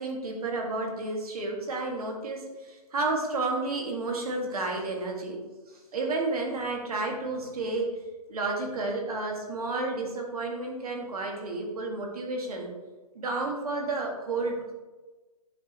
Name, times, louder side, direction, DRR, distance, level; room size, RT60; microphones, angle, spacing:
voice 1, 0.0-5.4 5.9-7.9 8.3-12.7 13.1-14.7, right 3 dB, 65° right, 1 dB, 1.8 m, -31 dB
9.8 x 5.1 x 3.0 m, 1.2 s
hypercardioid pair, 165°, 20 cm